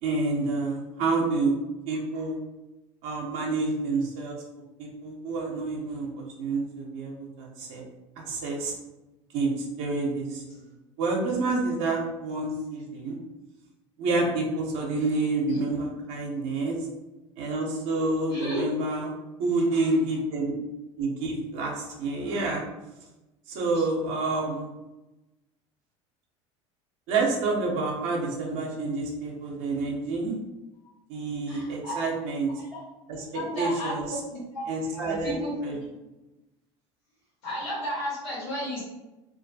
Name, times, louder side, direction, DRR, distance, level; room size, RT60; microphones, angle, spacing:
voice 1, 0.0-1.5 1.9-2.4 3.0-4.4 4.8-7.8 8.2-8.7 9.3-10.6 11.0-13.2 14.0-16.7 17.4-19.1 19.4-20.5 21.0-22.6 23.5-24.7 27.1-30.4 31.1-32.5 33.1-34.2 34.7-35.4 35.6-35.8, right 3 dB, 70° right, -2 dB, 0.6 m, -28 dB
voice 2, 18.3-18.6 23.7-23.8 31.5-32.0 32.5-32.7 33.3-33.9 34.3-35.8 37.4-38.8, equal, 75° left, -7 dB, 1.3 m, -33 dB
2.3 x 2.2 x 2.6 m, 1.0 s
hypercardioid pair, 85°, 15 cm